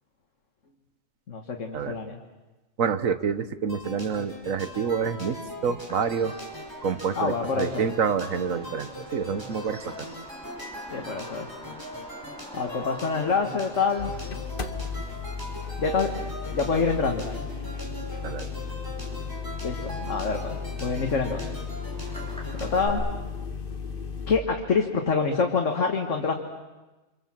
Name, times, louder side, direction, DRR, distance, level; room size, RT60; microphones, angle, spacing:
voice 1, 1.3-2.2 7.2-7.8 10.9-11.5 12.5-14.1 15.8-17.3 19.6-21.5 22.6-23.1 24.3-26.3, left 4 dB, 65° left, 2 dB, 2.0 m, -26 dB
voice 2, 2.8-5.4 5.6-6.3 6.8-10.1 18.2-18.5, right 6 dB, 80° right, 12 dB, 1.5 m, -28 dB
sound 1, 3.7-22.9, equal, 15° right, 5.0 m, -40 dB
Bird vocalization bird call bird song, 5.9-22.9, equal, 5° left, 5.0 m, -48 dB
sound 2, 14.0-24.4, left 5 dB, 45° left, 1.4 m, -35 dB
29.5 x 26.0 x 7.5 m, 1.1 s
omnidirectional pair, 1.4 m